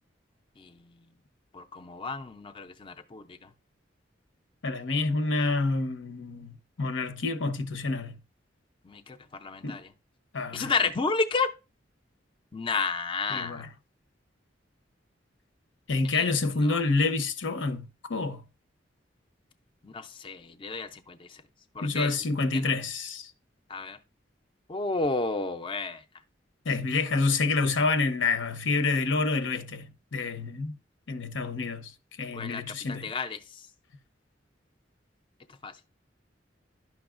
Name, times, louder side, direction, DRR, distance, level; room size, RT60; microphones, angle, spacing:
voice 1, 1.5-3.4 8.9-9.8 10.5-11.5 12.5-13.7 16.1-16.3 16.6-16.8 19.8-21.2 21.8-22.1 23.7-24.0 24.7-26.0 32.3-32.6 32.9-33.4 35.6-35.7, left 4 dB, 25° left, 0.4 m, -31 dB
voice 2, 4.6-6.5 6.8-8.2 9.6-9.8 10.3-10.7 13.3-13.7 15.9-18.4 21.8-23.3 26.6-29.8 30.1-30.7 31.1-31.9 32.2-33.0, left 3 dB, 85° left, 0.8 m, -28 dB
11.0 x 6.0 x 2.4 m
head